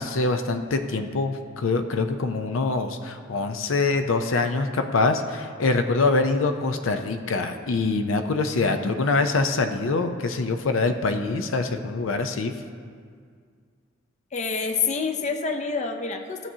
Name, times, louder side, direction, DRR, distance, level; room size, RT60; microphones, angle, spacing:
voice 1, 0.0-12.5, left 3 dB, 80° left, 7 dB, 0.5 m, -24 dB
voice 2, 14.3-16.5, left 5 dB, 35° left, 5 dB, 0.6 m, -27 dB
15.5 x 7.4 x 2.8 m, 2.1 s
head